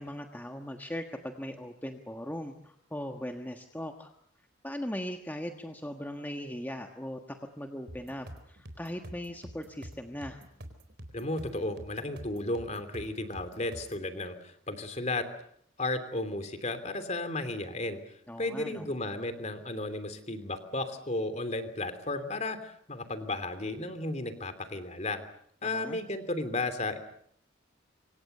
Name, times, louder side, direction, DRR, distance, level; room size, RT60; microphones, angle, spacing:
voice 1, 0.0-4.1 4.6-10.4 18.3-18.9 25.6-26.0, equal, 10° left, 4 dB, 1.4 m, -39 dB
sound 1, 7.9-14.1, equal, 55° right, 4.1 m, -47 dB
voice 2, 11.1-15.3 15.8-25.2 25.6-27.0, left 2 dB, 35° left, 10 dB, 3.1 m, -34 dB
27.0 x 25.0 x 6.8 m, 0.67 s
head